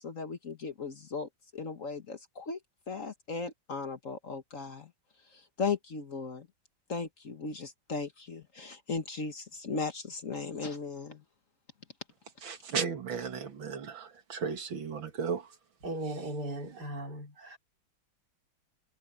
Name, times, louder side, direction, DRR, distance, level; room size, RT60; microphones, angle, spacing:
voice 1, 0.0-2.6 2.9-4.9 5.3-6.5 6.9-11.2, left 4 dB, 45° left, 1.6 m, -37 dB
voice 2, 12.5-15.4, right 6 dB, 80° right, 2.6 m, -35 dB
voice 3, 15.8-17.6, right 1 dB, 55° right, 4.2 m, -37 dB
omnidirectional pair, 2.1 m